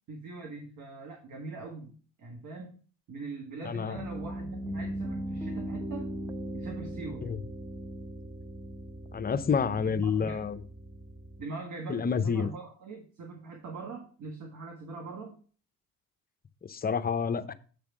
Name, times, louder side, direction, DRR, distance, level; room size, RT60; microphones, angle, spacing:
voice 1, 0.1-2.7 3.1-6.1 6.5-7.2 9.7-10.4 11.4-15.4, right 3 dB, 55° right, 2 dB, 1.6 m, -42 dB
voice 2, 3.6-4.0 7.2-7.4 9.1-10.6 11.9-12.5 16.7-17.5, left 6 dB, 25° left, 11 dB, 0.7 m, -28 dB
Piano, 3.9-11.4, right 1 dB, 10° right, 0.7 m, -39 dB
8.3 x 3.4 x 6.1 m, 0.40 s
supercardioid pair, 75°, 36 cm